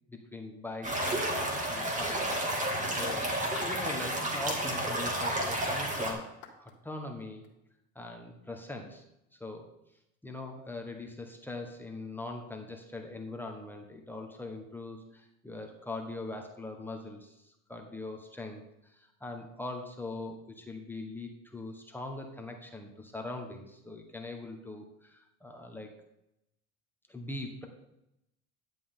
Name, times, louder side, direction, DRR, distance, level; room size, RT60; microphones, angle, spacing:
voice 1, 0.1-2.6 2.9-7.4 7.9-9.0 9.3-9.7 10.2-25.9 27.1-27.7, left 2 dB, 5° left, 2 dB, 1.3 m, -42 dB
sound 1, 0.8-6.1, right 1 dB, 20° right, 2.3 m, -31 dB
sound 2, 3.1-7.5, left 8 dB, 75° left, 2.0 m, -48 dB
11.0 x 7.6 x 3.8 m, 0.84 s
supercardioid pair, 110°, 33 cm